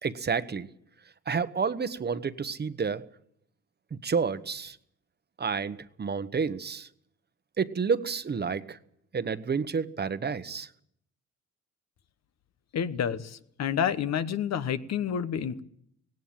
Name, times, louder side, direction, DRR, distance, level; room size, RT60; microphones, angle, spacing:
voice 1, 0.0-0.7 1.3-3.0 4.0-4.8 5.4-6.9 7.6-8.8 9.1-10.7, right 5 dB, 35° right, 13 dB, 1.1 m, -30 dB
voice 2, 12.7-15.6, left 8 dB, 60° left, 12 dB, 1.2 m, -29 dB
18.0 x 17.0 x 8.8 m, 0.72 s
cardioid pair, 90°, 30 cm